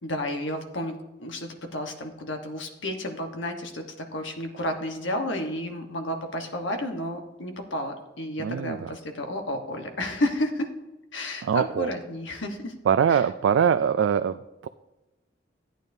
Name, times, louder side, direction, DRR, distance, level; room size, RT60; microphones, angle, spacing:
voice 1, 0.0-10.7 11.1-12.7 13.1-13.2, left 1 dB, 85° left, 4 dB, 1.2 m, -31 dB
voice 2, 8.4-8.9 11.4-11.9 12.9-14.7, right 7 dB, 85° right, 11 dB, 0.3 m, -23 dB
14.0 x 9.0 x 2.7 m, 1.0 s
head